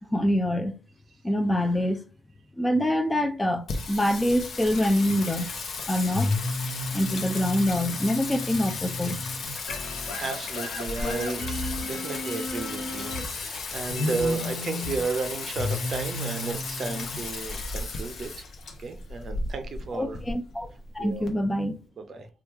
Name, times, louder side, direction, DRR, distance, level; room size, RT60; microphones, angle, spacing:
voice 1, 0.1-0.7 1.2-2.0 2.6-5.5 5.9-6.3 6.9-9.4 19.9-21.8, left 1 dB, 15° left, 0.4 m, -25 dB
Singing, 3.7-21.3, left 3 dB, 55° left, 0.7 m, -32 dB
sound 1, 9.7-16.5, left 2 dB, 85° left, 1.0 m, -39 dB
voice 2, 10.2-18.5 18.8-20.2 21.0-21.3 22.0-22.3, right 4 dB, 50° right, 0.5 m, -33 dB
3.0 x 2.3 x 3.5 m
cardioid pair, 90°, 0 cm